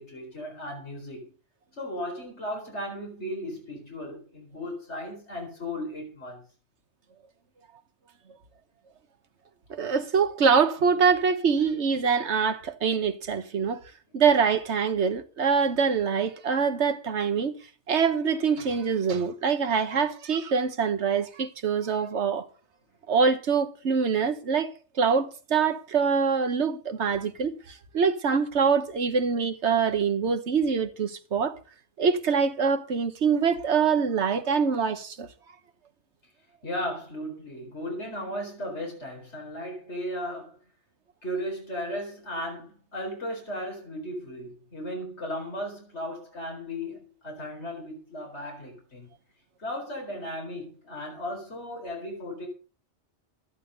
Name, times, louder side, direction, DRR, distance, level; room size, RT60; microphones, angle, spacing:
voice 1, 0.0-1.3 1.8-6.4 36.6-40.6 41.2-49.1 49.6-52.5, equal, 75° left, 4.7 m, -36 dB
voice 2, 9.7-13.8 14.1-17.6 17.9-22.5 23.1-31.6 32.0-35.3, right 6 dB, 75° right, 1.5 m, -24 dB
12.5 x 11.0 x 5.3 m
omnidirectional pair, 1.2 m